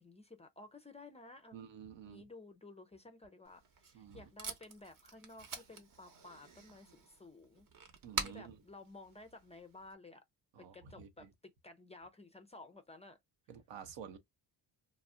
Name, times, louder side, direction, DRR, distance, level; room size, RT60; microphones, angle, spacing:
voice 1, 0.0-1.6 2.0-7.7 8.2-10.2 10.6-13.2 14.1-14.2, left 2 dB, 15° left, 0.3 m, -54 dB
voice 2, 1.5-2.3 3.9-4.2 8.0-8.6 10.5-11.3 13.5-14.2, right 8 dB, 80° right, 0.8 m, -50 dB
Packing tape duct tape, 3.4-9.9, right 5 dB, 45° right, 0.9 m, -46 dB
2.3 x 2.0 x 3.5 m
cardioid pair, 105°, 44 cm